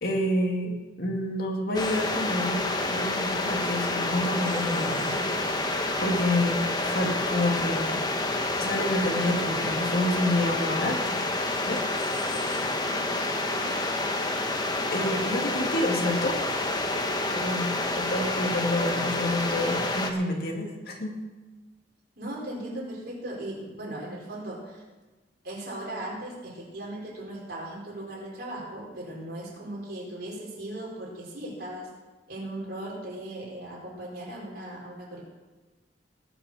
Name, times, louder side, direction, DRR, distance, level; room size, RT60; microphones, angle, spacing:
voice 1, 0.0-5.3 6.0-8.0 8.6-11.3 11.6-11.8 14.9-16.4 17.3-21.2, left 1 dB, 60° left, 1 dB, 2.3 m, -28 dB
sound 1, 1.7-20.1, left 2 dB, 25° left, 1.1 m, -28 dB
voice 2, 13.3-13.7 22.2-24.8 25.4-31.9 32.3-35.2, right 1 dB, 60° right, -4 dB, 4.9 m, -38 dB
20.0 x 6.9 x 6.4 m, 1.2 s
head